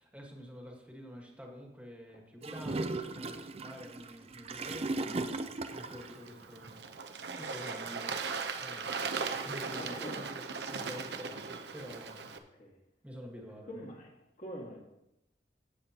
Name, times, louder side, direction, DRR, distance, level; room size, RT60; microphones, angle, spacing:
voice 1, 0.0-8.3 8.5-12.3 13.0-13.8, equal, 10° right, 0 dB, 1.5 m, -48 dB
Gurgling / Toilet flush, 2.4-6.2, right 2 dB, 35° right, 0.5 m, -37 dB
Bird / Water, 5.7-12.4, right 5 dB, 70° right, 0.7 m, -38 dB
voice 2, 9.7-10.2 12.6-12.7 13.7-14.1 14.4-14.8, equal, 45° left, 0 dB, 1.9 m, -44 dB
15.5 x 7.0 x 2.9 m, 0.89 s
head